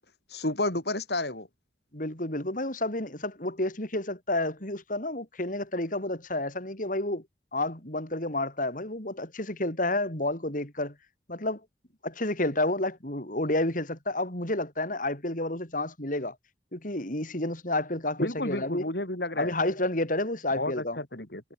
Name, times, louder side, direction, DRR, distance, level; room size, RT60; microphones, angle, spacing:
voice 1, 0.3-1.5 18.2-19.5 20.6-21.4, left 2 dB, 65° left, 5.6 m, -31 dB
voice 2, 1.9-7.2 7.5-11.0 11.3-11.6 12.0-16.4 16.7-18.8 19.4-21.0, left 1 dB, 50° left, 5.3 m, -30 dB
head